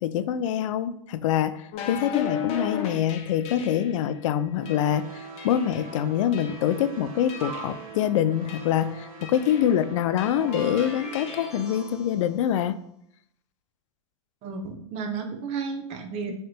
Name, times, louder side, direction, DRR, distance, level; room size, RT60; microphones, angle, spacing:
voice 1, 0.0-12.8 16.3-16.4, left 10 dB, 65° left, 12 dB, 0.4 m, -25 dB
sound 1, 1.7-4.0 4.7-4.9 5.4-5.9 6.3-6.8 7.3-7.8 8.5-8.8 9.2-9.7 10.2-11.5, left 8 dB, 35° left, 0.8 m, -35 dB
sound 2, 4.5-11.9, right 4 dB, 90° right, 0.8 m, -42 dB
sound 3, 7.4-7.9 10.3-12.5, right 4 dB, 5° right, 1.4 m, -41 dB
voice 2, 14.4-16.3, right 5 dB, 40° right, 5 dB, 0.9 m, -32 dB
3.7 x 3.3 x 4.3 m, 0.72 s
supercardioid pair, 130°, 17 cm